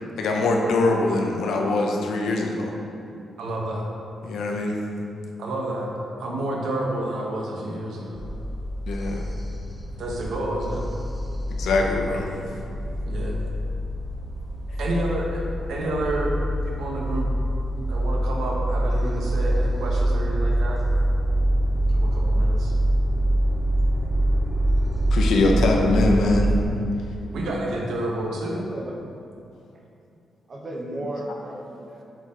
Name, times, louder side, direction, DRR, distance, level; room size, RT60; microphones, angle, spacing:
voice 1, 0.2-2.7 4.2-4.8 8.9-9.2 11.5-12.3 25.1-26.5, left 2 dB, 85° left, 1 dB, 0.8 m, -22 dB
voice 2, 3.4-3.9 5.4-5.9 6.2-8.2 10.0-10.8 13.1-13.4 14.8-15.4 15.7-16.3 16.7-17.3 17.9-20.8 21.9-22.7 27.3-28.6, right 1 dB, 85° right, -2 dB, 1.2 m, -29 dB
sound 1, 8.1-26.6, right 1 dB, ahead, 0.7 m, -25 dB
voice 3, 28.5-29.0 29.7-29.8 30.5-32.0, right 1 dB, 35° right, -1 dB, 1.0 m, -34 dB
7.8 x 4.6 x 3.8 m, 2.6 s
wide cardioid pair, 145°, 0 cm